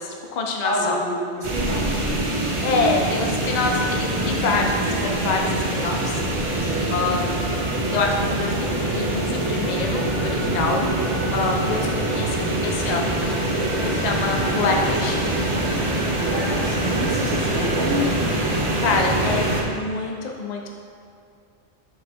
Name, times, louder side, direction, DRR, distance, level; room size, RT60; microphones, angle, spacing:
voice 1, 0.0-1.0 2.6-6.2 6.9-7.5 7.9-8.7 8.9-10.8 11.3-13.2 13.8-15.2 18.8-20.7, left 3 dB, 75° left, 1 dB, 0.4 m, -26 dB
voice 2, 0.6-1.9 6.6-6.9 10.5-10.9 13.8-13.9 16.1-18.0, right 1 dB, 60° right, -9 dB, 1.8 m, -28 dB
sound 1, 1.4-19.6, right 1 dB, 35° right, 0.6 m, -24 dB
7.1 x 4.0 x 3.3 m, 2.4 s
omnidirectional pair, 1.3 m